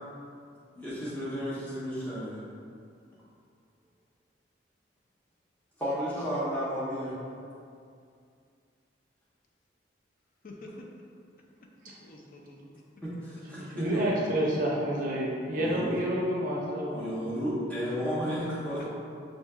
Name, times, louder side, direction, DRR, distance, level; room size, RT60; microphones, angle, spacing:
voice 1, 0.8-2.4 5.8-7.1 13.0-14.2 15.5-15.9 16.9-18.9, equal, 10° left, -10 dB, 0.7 m, -33 dB
voice 2, 10.4-11.0 11.8-12.8 18.7-18.9, left 1 dB, 50° left, -1 dB, 0.4 m, -48 dB
voice 3, 13.5-17.1, right 1 dB, 45° right, -4 dB, 0.5 m, -29 dB
5.8 x 2.7 x 2.3 m, 2.4 s
head